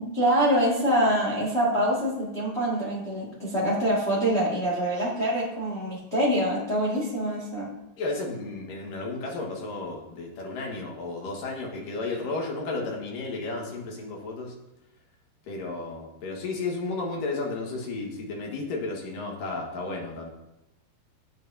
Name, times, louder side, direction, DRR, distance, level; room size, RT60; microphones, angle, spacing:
voice 1, 0.1-7.7, equal, 25° left, -6 dB, 1.7 m, -25 dB
voice 2, 8.0-14.5 15.4-20.3, left 3 dB, 65° left, -1 dB, 3.1 m, -33 dB
13.0 x 9.1 x 2.8 m, 0.93 s
omnidirectional pair, 4.4 m